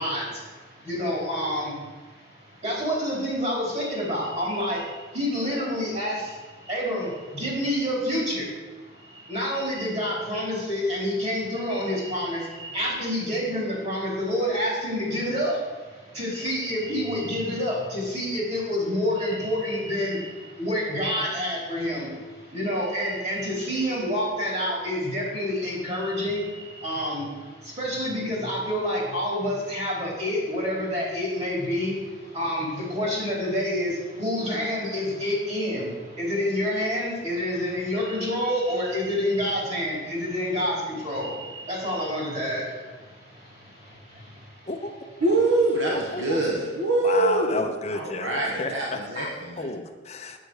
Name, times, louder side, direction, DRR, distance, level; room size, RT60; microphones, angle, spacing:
voice 1, 0.0-44.7 45.2-45.3 46.0-46.4, equal, 35° right, -4 dB, 4.4 m, -28 dB
voice 2, 44.7-45.2 45.9-46.4 47.0-50.4, left 2 dB, 35° left, 5 dB, 0.9 m, -32 dB
voice 3, 45.2-47.6 47.9-49.7, right 2 dB, 80° right, -3 dB, 1.7 m, -24 dB
9.1 x 8.5 x 6.5 m, 1.3 s
head